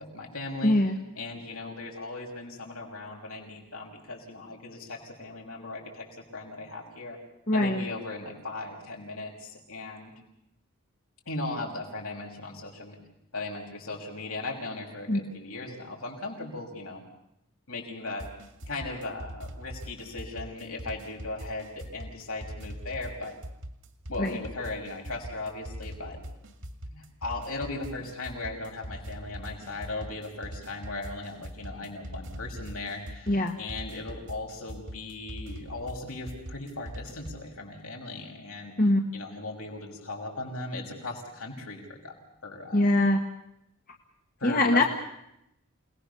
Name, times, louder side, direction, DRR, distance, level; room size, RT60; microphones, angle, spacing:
voice 1, 0.0-0.8 1.1-7.2 7.5-10.1 11.3-13.0 13.3-17.0 17.7-18.3 18.7-23.4 24.1-26.2 26.9-38.7 39.1-42.1 42.4-42.9 44.4-44.9, left 2 dB, 75° left, 0 dB, 6.0 m, -38 dB
voice 2, 0.6-1.0 7.5-7.8 15.1-15.2 24.2-24.4 33.3-33.5 38.8-39.2 42.7-43.3 44.4-44.8, left 1 dB, 40° left, 2 dB, 1.5 m, -23 dB
sound 1, 18.2-37.5, equal, 60° right, 2.3 m, -42 dB
28.5 x 19.5 x 6.9 m, 0.81 s
head